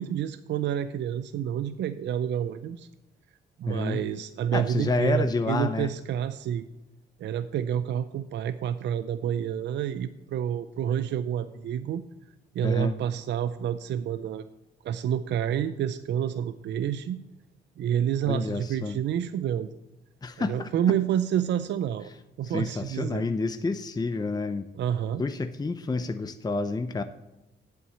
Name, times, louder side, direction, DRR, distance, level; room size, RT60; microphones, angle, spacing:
voice 1, 0.0-2.9 3.6-6.6 7.2-12.0 12.5-14.4 14.8-17.2 17.8-19.7 20.4-22.1 22.4-23.2 24.7-25.2, right 9 dB, 70° right, 12 dB, 0.5 m, -29 dB
voice 2, 3.7-4.0 4.5-5.9 12.6-13.0 18.3-19.0 20.2-21.0 22.4-24.7 25.2-27.0, left 3 dB, 20° left, 9 dB, 0.6 m, -29 dB
8.4 x 7.9 x 8.2 m, 0.99 s
cardioid pair, 70°, 19 cm